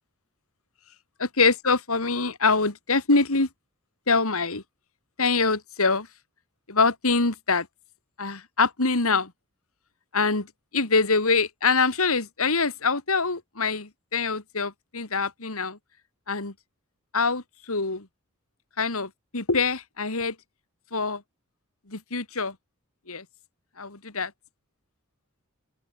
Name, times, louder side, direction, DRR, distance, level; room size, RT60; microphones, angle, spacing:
voice 1, 1.2-3.5 4.1-4.6 5.2-6.1 6.7-7.7 8.2-9.3 10.1-10.5 10.7-15.8 16.3-16.5 17.1-18.1 18.8-20.3 20.9-21.2 21.9-22.5 23.1-23.2 23.8-24.3, left 4 dB, 75° left, 2.7 m, -24 dB
open air
head